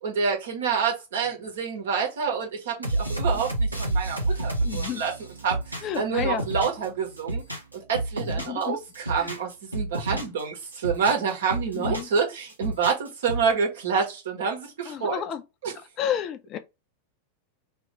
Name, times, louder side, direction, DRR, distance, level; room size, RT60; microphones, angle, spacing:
voice 1, 0.0-5.1 5.4-7.4 7.7-15.2 15.6-15.7, right 6 dB, 60° right, 1.5 m, -28 dB
sound 1, 2.8-6.9 7.2-8.6 8.9-10.4 10.7-12.2 12.5-13.5, right 2 dB, 85° right, 1.2 m, -29 dB
voice 2, 4.6-5.0 5.8-6.5 8.2-8.8 9.2-9.3 10.1-10.3 11.7-12.1 14.9-15.4 16.0-16.6, left 10 dB, 35° left, 0.6 m, -31 dB
3.1 x 3.0 x 4.5 m
figure-of-eight pair, 90°, 0 cm